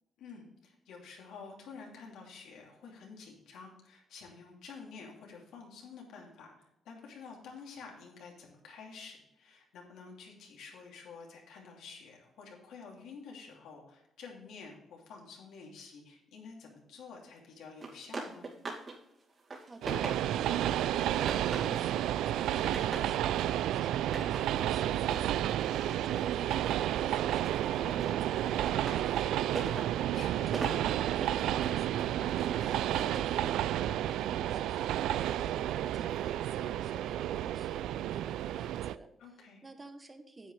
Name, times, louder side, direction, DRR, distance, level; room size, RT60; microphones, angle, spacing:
voice 1, 0.2-18.5 27.8-28.1 30.1-30.5 39.2-39.6, left 5 dB, 85° left, -1 dB, 2.8 m, -50 dB
sound 1, 17.8-19.0 19.3-20.5 21.0-21.9 22.3-23.1 24.0-27.0 27.3-33.3, right 3 dB, 40° right, 2.5 m, -43 dB
voice 2, 19.7-20.1 20.5-25.5 25.9-31.0 31.2-39.1 39.6-40.5, right 2 dB, 20° right, 7 dB, 1.0 m, -51 dB
Train, 19.8-39.0, right 12 dB, 90° right, 0.3 m, -31 dB
9.9 x 7.9 x 3.3 m, 0.86 s
cardioid pair, 105°, 0 cm